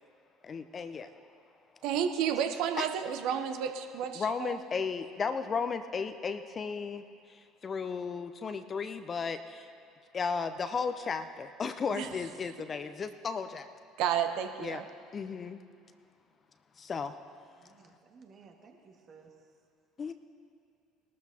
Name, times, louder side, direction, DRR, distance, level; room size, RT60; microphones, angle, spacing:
voice 1, 0.4-1.1 2.8-2.9 4.2-7.0 7.6-9.7 10.1-13.7 14.6-14.8 15.1-15.6 16.8-17.1 20.0-20.1, left 5 dB, 35° left, 9 dB, 0.7 m, -34 dB
voice 2, 1.8-4.6 11.9-12.1 14.0-14.8, right 9 dB, 65° right, 6 dB, 0.9 m, -31 dB
voice 3, 17.6-19.3, right 5 dB, 45° right, 2 dB, 1.9 m, -56 dB
20.5 x 12.5 x 2.9 m, 2.3 s
hypercardioid pair, 60°, 0 cm